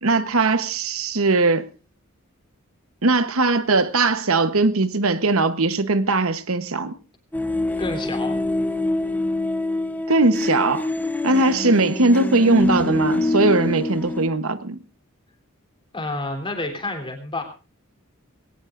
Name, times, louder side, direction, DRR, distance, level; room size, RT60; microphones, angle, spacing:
voice 1, 0.0-1.7 3.0-6.9 10.1-10.9 11.2-14.8, right 3 dB, 70° right, 1.0 m, -20 dB
sound 1, 7.3-14.3, left 2 dB, 10° left, 0.9 m, -25 dB
voice 2, 7.8-8.4 15.9-17.4, left 2 dB, 25° left, 3.4 m, -29 dB
21.0 x 17.5 x 2.6 m
head